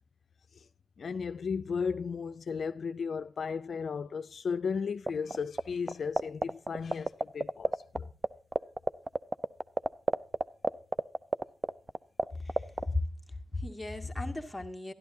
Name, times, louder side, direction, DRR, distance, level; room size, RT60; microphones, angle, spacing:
voice 1, 1.0-8.1, left 5 dB, 70° left, 0.4 m, -35 dB
sound 1, 5.1-5.6 5.9-8.0 8.2-8.3 8.5-12.2 12.5-12.8, right 2 dB, 30° right, 0.5 m, -26 dB
voice 2, 12.4-13.0 13.5-14.9, left 2 dB, 10° left, 1.9 m, -35 dB
12.0 x 11.5 x 2.7 m
cardioid pair, 55°, 0 cm